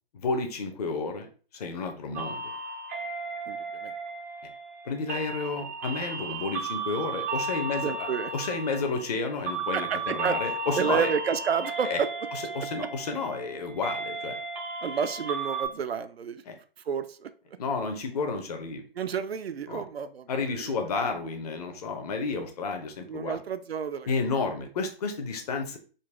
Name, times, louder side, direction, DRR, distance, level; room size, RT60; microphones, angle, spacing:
voice 1, 0.1-1.3 1.5-2.5 4.4-4.5 4.8-8.1 8.3-11.1 11.8-12.0 12.3-14.4 16.5-16.6 17.6-18.8 19.7-19.8 20.3-23.4 24.1-25.8, left 4 dB, 40° left, 5 dB, 0.7 m, -31 dB
sound 1, 2.2-15.7, right 3 dB, 15° right, 0.3 m, -35 dB
voice 2, 3.5-3.9 7.8-8.3 9.7-10.4 10.8-12.1 14.8-16.4 16.9-17.3 19.0-20.7 23.1-24.1, right 7 dB, 80° right, 11 dB, 0.5 m, -30 dB
3.9 x 2.2 x 3.4 m, 0.39 s
figure-of-eight pair, 130°, 30 cm